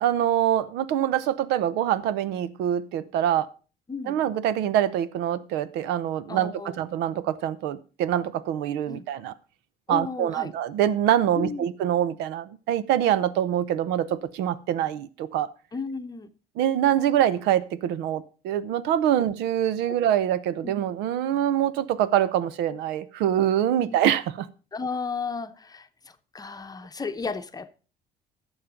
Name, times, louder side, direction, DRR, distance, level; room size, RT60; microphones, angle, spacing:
voice 1, 0.0-3.5 4.1-9.3 9.9-15.5 16.6-24.5, right 11 dB, 90° right, 0.7 m, -25 dB
voice 2, 6.3-6.8 8.9-9.0 9.9-10.5 11.3-11.7 15.7-16.3 19.9-20.0 20.6-20.7 23.8-24.0 24.7-25.9 26.3-27.7, left 4 dB, 20° left, 0.8 m, -33 dB
11.5 x 7.2 x 5.1 m
cardioid pair, 110°, 17 cm